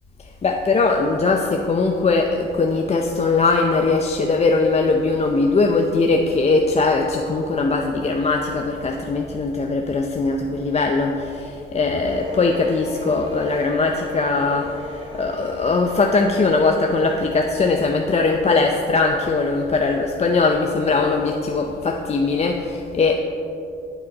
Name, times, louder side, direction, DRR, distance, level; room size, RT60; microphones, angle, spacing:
voice 1, 0.2-23.2, left 3 dB, 35° left, 2 dB, 0.6 m, -20 dB
sound 1, 12.0-18.9, equal, 30° right, 2.2 m, -38 dB
8.5 x 8.4 x 4.0 m, 2.8 s
cardioid pair, 90°, 20 cm